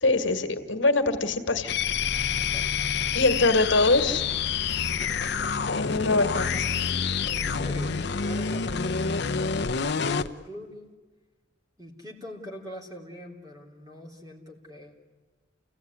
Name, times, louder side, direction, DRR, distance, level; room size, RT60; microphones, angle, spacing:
voice 1, 0.0-1.8 3.1-4.3 5.7-7.0, left 2 dB, 85° left, 8 dB, 1.9 m, -24 dB
sound 1, 1.7-10.3, left 6 dB, 60° left, 0.7 m, -27 dB
voice 2, 2.4-2.9 7.2-11.0 11.8-15.0, left 1 dB, 20° right, 0 dB, 3.6 m, -43 dB
28.5 x 17.0 x 9.7 m, 1.3 s
head